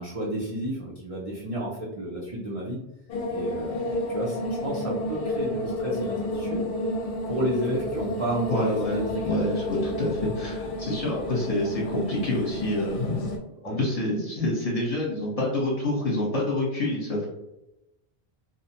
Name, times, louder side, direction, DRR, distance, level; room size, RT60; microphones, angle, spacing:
voice 1, 0.0-2.8 3.3-6.6 7.2-9.4 13.6-13.8, right 1 dB, 45° right, -6 dB, 0.5 m, -31 dB
sound 1, 3.1-13.4, left 1 dB, 65° left, 0.7 m, -31 dB
voice 2, 8.5-13.3 13.6-17.3, left 1 dB, 35° left, -4 dB, 0.8 m, -27 dB
2.5 x 2.0 x 2.8 m, 0.92 s
omnidirectional pair, 1.1 m